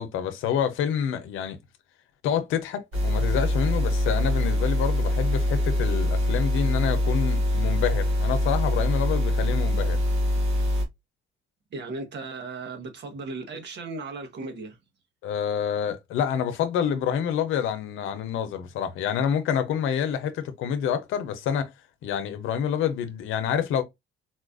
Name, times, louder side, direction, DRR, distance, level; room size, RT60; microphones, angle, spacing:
voice 1, 0.0-1.6 2.2-10.0 15.2-21.7 22.0-23.8, left 8 dB, 90° left, 0.7 m, -27 dB
sound 1, 2.9-10.8, left 1 dB, 90° right, 1.6 m, -24 dB
voice 2, 11.7-14.8, right 3 dB, 60° right, 1.2 m, -36 dB
4.1 x 2.4 x 2.5 m
cardioid pair, 90°, 20 cm